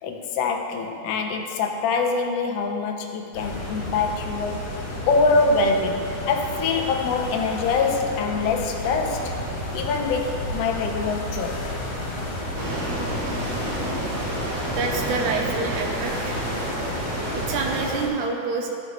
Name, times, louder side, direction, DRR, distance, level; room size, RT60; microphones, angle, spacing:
voice 1, 0.0-9.4 9.7-11.7, left 4 dB, 75° left, 3 dB, 1.5 m, -24 dB
sound 1, 3.3-18.1, left 1 dB, 55° left, 2.9 m, -32 dB
sound 2, 12.5-17.9, right 1 dB, 50° right, 2.0 m, -30 dB
voice 2, 14.7-16.4 17.3-18.7, right 4 dB, 85° right, 1 dB, 2.3 m, -27 dB
15.5 x 5.6 x 3.1 m, 2.5 s
omnidirectional pair, 3.5 m